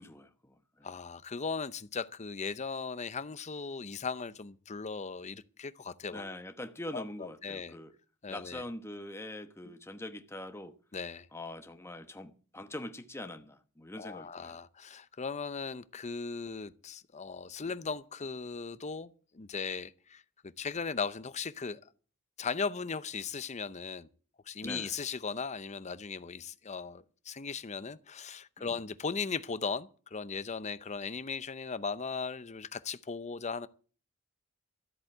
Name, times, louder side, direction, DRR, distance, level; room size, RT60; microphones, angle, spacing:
voice 1, 0.0-0.9 6.1-7.9 8.3-10.7 11.3-14.6 24.6-24.9 28.6-28.8, left 1 dB, 10° left, 1.1 m, -43 dB
voice 2, 0.8-6.3 6.9-7.7 8.2-8.6 10.9-11.3 14.0-20.2 20.6-21.8 22.4-24.1 24.5-33.7, left 5 dB, 30° left, 0.7 m, -38 dB
13.5 x 8.2 x 7.8 m
head